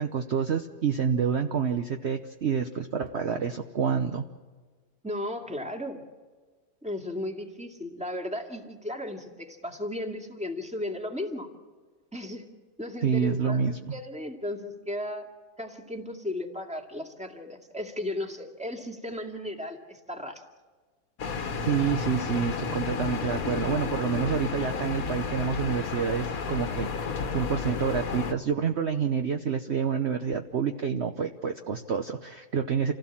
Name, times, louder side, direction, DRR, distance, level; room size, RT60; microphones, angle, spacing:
voice 1, 0.0-4.3 13.0-13.8 21.6-32.9, right 6 dB, 50° right, 5 dB, 1.1 m, -28 dB
voice 2, 5.0-6.0 6.8-11.5 12.1-12.5 12.8-13.7 13.9-15.3 15.6-20.4, left 1 dB, 5° right, 2 dB, 2.2 m, -35 dB
sound 1, 21.2-28.3, left 5 dB, 60° left, 1.7 m, -32 dB
28.0 x 16.5 x 7.4 m, 1.4 s
omnidirectional pair, 1.7 m